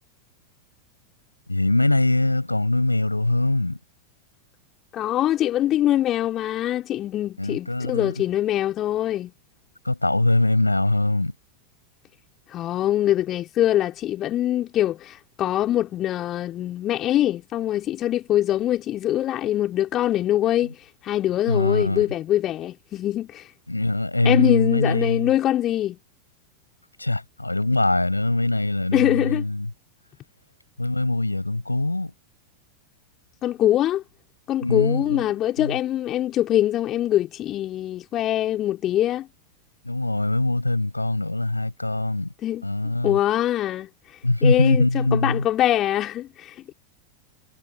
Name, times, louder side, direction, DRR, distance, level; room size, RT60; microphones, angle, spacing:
voice 1, 1.5-3.8 7.4-8.2 9.8-11.3 20.6-20.7 21.5-22.1 23.7-25.3 27.0-29.7 30.8-32.1 34.6-35.3 35.6-35.8 39.8-42.3 42.6-43.2 44.2-45.5, left 2 dB, 85° left, 7.4 m, -22 dB
voice 2, 4.9-9.3 12.5-20.8 21.0-23.4 24.3-26.0 28.9-29.4 33.4-34.0 34.5-39.3 42.4-42.7 43.0-43.9 44.4-46.7, left 12 dB, 30° left, 3.7 m, -23 dB
figure-of-eight pair, 90°, 0 cm